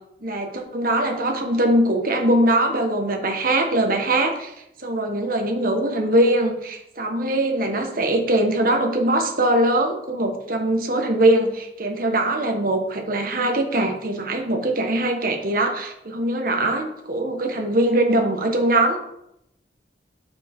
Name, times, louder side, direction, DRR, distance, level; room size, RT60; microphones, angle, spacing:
voice 1, 0.2-4.5 4.8-19.0, right 1 dB, 55° right, 3 dB, 1.5 m, -21 dB
8.8 x 5.7 x 3.7 m, 0.80 s
head